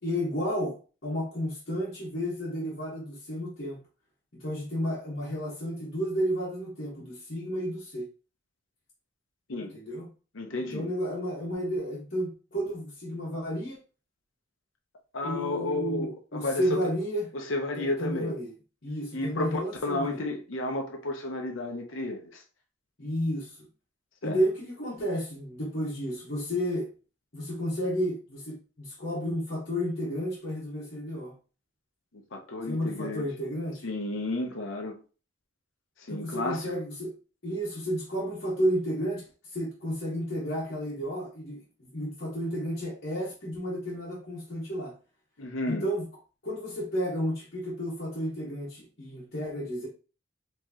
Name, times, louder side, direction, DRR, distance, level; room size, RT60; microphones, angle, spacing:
voice 1, 0.0-3.8 4.4-8.1 9.7-10.1 10.6-13.8 15.2-17.3 17.8-18.5 18.8-20.2 23.0-23.7 24.2-26.9 27.3-31.3 32.7-33.8 36.1-37.1 37.4-44.9 45.7-46.0 46.4-49.9, equal, 55° left, 1.3 m, -32 dB
voice 2, 10.3-10.9 15.1-16.9 17.3-18.4 19.1-22.4 24.2-24.4 32.3-33.3 33.8-35.0 36.0-36.7 45.4-45.9, left 2 dB, 75° left, 0.8 m, -32 dB
4.6 x 3.0 x 2.9 m
head